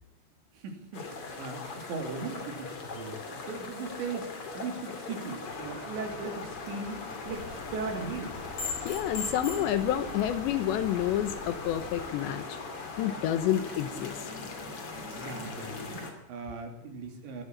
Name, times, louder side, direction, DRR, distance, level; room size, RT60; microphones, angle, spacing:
voice 1, 0.6-8.4 15.1-17.4, right 4 dB, 80° right, 4 dB, 5.2 m, -38 dB
sound 1, 0.9-16.1, left 4 dB, 35° left, 3.2 m, -40 dB
sound 2, 7.3-12.1, left 4 dB, 50° left, 5.3 m, -41 dB
voice 2, 8.8-12.6 13.0-14.3, left 11 dB, 80° left, 11 dB, 3.2 m, -29 dB
20.0 x 13.0 x 9.9 m, 0.80 s
omnidirectional pair, 5.1 m